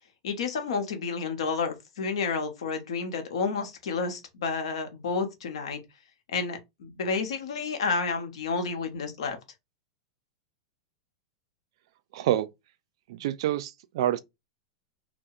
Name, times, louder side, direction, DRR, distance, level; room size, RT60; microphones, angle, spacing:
voice 1, 0.2-5.8 6.3-9.4, left 4 dB, 85° left, 0.7 m, -30 dB
voice 2, 12.1-12.5 13.1-14.2, right 12 dB, 65° right, 0.3 m, -27 dB
2.3 x 2.0 x 2.6 m
supercardioid pair, 145°, 3 cm